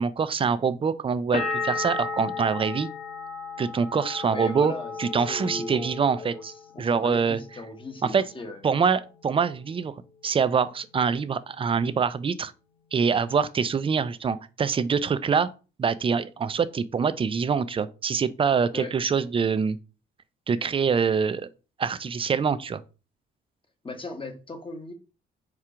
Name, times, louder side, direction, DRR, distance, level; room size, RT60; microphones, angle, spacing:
voice 1, 0.0-2.9 3.6-4.7 5.0-6.5 6.8-7.4 8.0-8.2 8.6-9.9 10.2-12.5 12.9-15.5 15.8-19.8 20.5-21.4 21.8-22.8, right 6 dB, 25° right, 0.4 m, -25 dB
sound 1, 1.3-7.0 7.3-8.0, left 4 dB, 40° left, 1.2 m, -34 dB
voice 2, 4.3-5.9 6.2-8.6 18.7-18.9 23.8-24.9, left 2 dB, 25° left, 1.0 m, -38 dB
4.4 x 2.4 x 4.8 m
cardioid pair, 90°, 20 cm